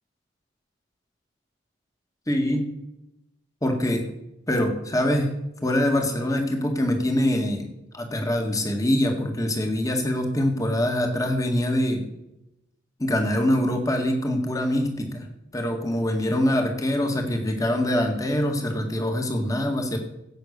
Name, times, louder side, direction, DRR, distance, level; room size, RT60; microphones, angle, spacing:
voice 1, 2.3-2.7 3.6-4.1 4.5-5.3 5.6-7.7 7.9-12.1 13.0-15.3 15.5-20.0, left 1 dB, 15° left, 4 dB, 1.8 m, -24 dB
16.5 x 6.6 x 6.6 m, 0.89 s
head